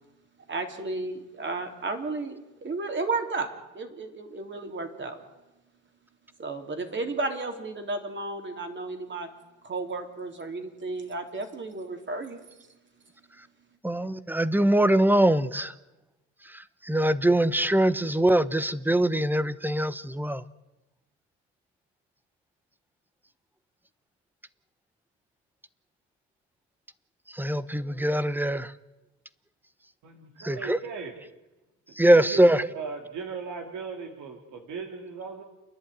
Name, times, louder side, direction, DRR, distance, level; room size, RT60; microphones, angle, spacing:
voice 1, 0.5-3.5 3.7-5.2 6.4-9.3 9.6-12.4, right 3 dB, 40° right, 5 dB, 3.5 m, -33 dB
voice 2, 13.8-15.7 16.9-20.4 27.4-28.7 30.4-30.8 32.0-32.7, right 1 dB, 5° right, 16 dB, 0.9 m, -22 dB
voice 3, 30.0-31.2 32.0-35.4, right 5 dB, 75° right, 3 dB, 2.4 m, -38 dB
29.5 x 11.0 x 9.3 m, 1.1 s
cardioid pair, 90°, 30 cm